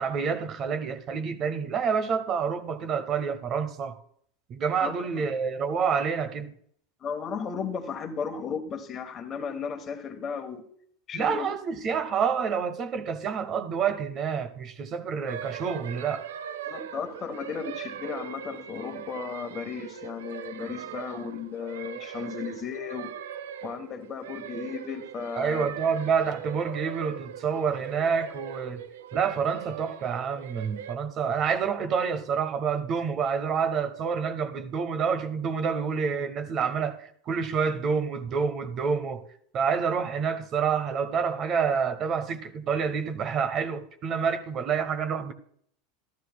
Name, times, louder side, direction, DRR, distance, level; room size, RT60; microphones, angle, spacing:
voice 1, 0.0-4.0 4.5-6.5 11.1-16.3 25.4-28.8 29.1-39.2 39.5-45.3, right 6 dB, 40° right, 0.8 m, -28 dB
voice 2, 4.8-5.2 7.0-10.7 11.1-11.5 16.7-23.2 23.6-25.7, left 6 dB, 30° left, 1.2 m, -35 dB
sound 1, 15.3-31.0, right 9 dB, 90° right, 0.4 m, -40 dB
12.5 x 12.5 x 2.3 m
supercardioid pair, 115°, 0 cm